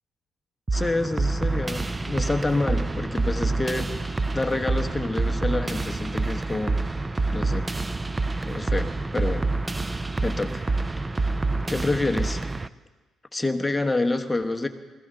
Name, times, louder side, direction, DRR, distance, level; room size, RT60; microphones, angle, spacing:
voice 1, 0.7-6.8 7.3-7.7 8.4-9.5 9.9-10.7 11.2-11.3 11.7-12.4 13.3-14.7, left 2 dB, 15° left, 6 dB, 1.1 m, -28 dB
sound 1, 0.7-12.7, right 3 dB, 20° right, 0.4 m, -27 dB
21.5 x 15.5 x 3.9 m, 1.3 s
cardioid pair, 90°, 0 cm